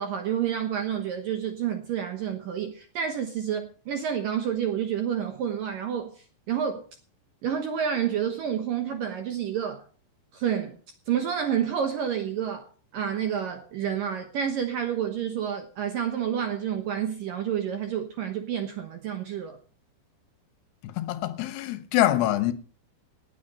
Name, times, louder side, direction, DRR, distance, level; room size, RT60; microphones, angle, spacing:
voice 1, 0.0-6.9 7.4-9.8 10.3-10.8 11.1-12.7 12.9-19.6, right 8 dB, 75° right, 2.1 m, -29 dB
voice 2, 20.8-22.5, left 14 dB, 70° left, 2.8 m, -25 dB
18.5 x 9.6 x 5.4 m
omnidirectional pair, 5.5 m